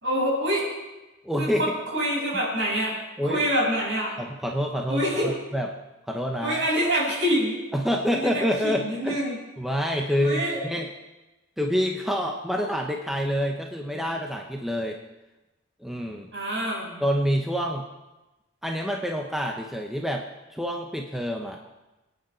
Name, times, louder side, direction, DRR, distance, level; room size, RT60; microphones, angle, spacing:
voice 1, 0.0-0.6 1.4-3.0 3.2-4.2 4.9-5.3 6.4-7.6 8.1-9.4 10.2-10.6 16.3-16.9, equal, 60° right, -3 dB, 6.4 m, -26 dB
voice 2, 1.2-1.7 2.3-2.4 3.2-3.5 4.2-5.7 6.0-6.6 7.7-9.3 9.6-10.9 11.6-15.0 15.8-16.3 17.0-17.9 18.6-20.2 20.5-21.6, equal, ahead, 1 dB, 0.9 m, -27 dB
24.0 x 9.4 x 4.5 m, 1.1 s
head